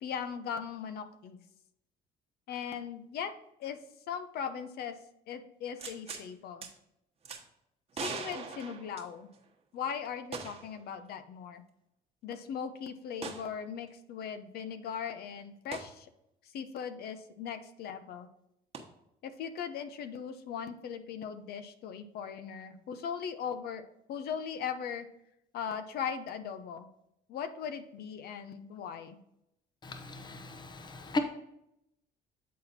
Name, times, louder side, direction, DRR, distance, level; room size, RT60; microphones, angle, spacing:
voice 1, 0.0-1.4 2.5-3.3 3.6-3.8 4.1-5.0 5.3-6.7 8.0-9.3 9.7-11.6 12.2-16.1 16.4-18.3 19.2-23.8 24.1-25.1 25.5-26.9 27.3-29.2, left 7 dB, 70° left, 10 dB, 0.7 m, -39 dB
sound 1, 5.8-6.3 6.6-6.7 7.2-7.4 7.9-9.4 10.3-10.8 11.1-11.2 13.2-13.5 15.7-15.9 18.7-18.8, right 5 dB, 35° right, 1.2 m, -40 dB
voice 2, 29.8-31.2, left 2 dB, 25° left, 7 dB, 0.8 m, -36 dB
8.4 x 4.2 x 4.1 m, 0.80 s
cardioid pair, 110°, 17 cm